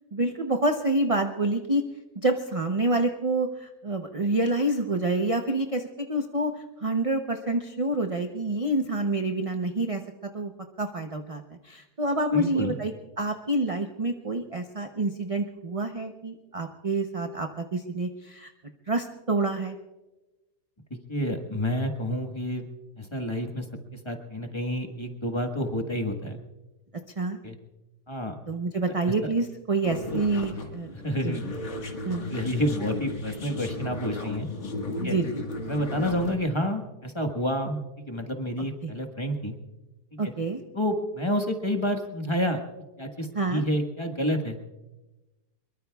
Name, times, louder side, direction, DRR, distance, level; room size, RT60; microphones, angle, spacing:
voice 1, 0.1-1.8 2.2-6.5 6.8-10.0 10.3-10.5 10.8-18.5 18.9-19.8 27.2-27.4 28.5-30.9 31.2-31.4 32.1-32.3 35.0-35.4 38.8-38.9 40.2-40.6 43.3-43.6, right 2 dB, 35° right, 5 dB, 0.5 m, -27 dB
voice 2, 12.3-12.8 21.1-22.6 23.0-23.6 23.9-26.4 27.4-27.6 28.1-28.3 29.1-29.3 30.1-30.2 30.9-31.4 32.3-34.5 35.0-35.2 35.7-39.5 40.1-40.3 40.7-42.6 43.0-44.6, equal, 20° left, 3 dB, 1.3 m, -29 dB
sound 1, 29.8-36.4, left 2 dB, 45° left, 1.9 m, -35 dB
24.5 x 22.0 x 2.3 m, 1.1 s
omnidirectional pair, 1.8 m